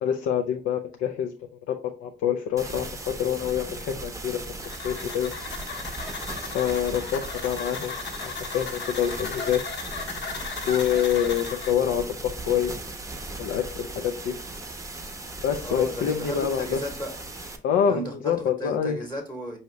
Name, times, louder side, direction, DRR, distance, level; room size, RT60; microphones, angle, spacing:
voice 1, 0.0-1.3 1.7-1.8 2.0-2.9 3.2-4.4 4.8-5.3 6.5-7.9 8.2-9.6 10.7-12.7 13.4-14.3 15.4-16.8 17.6-19.0, left 8 dB, 85° left, 0.4 m, -26 dB
sound 1, 2.6-17.6, right 2 dB, 15° right, 0.6 m, -38 dB
sound 2, 4.6-11.7, left 5 dB, 65° left, 0.8 m, -36 dB
voice 2, 15.6-17.1 17.9-19.6, right 1 dB, 10° left, 0.9 m, -35 dB
4.7 x 2.8 x 3.1 m
cardioid pair, 90°, 20 cm